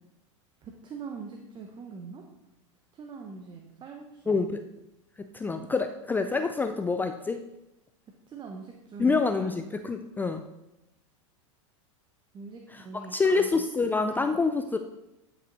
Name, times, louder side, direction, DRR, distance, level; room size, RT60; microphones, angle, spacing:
voice 1, 0.6-2.2 3.0-4.4 8.3-9.5 12.3-13.1, right 4 dB, 30° right, 3 dB, 1.0 m, -42 dB
voice 2, 4.3-4.6 5.2-7.4 9.0-10.4 12.7-14.8, left 4 dB, 10° left, 7 dB, 0.4 m, -27 dB
10.0 x 5.5 x 4.0 m, 0.92 s
hypercardioid pair, 95°, 17 cm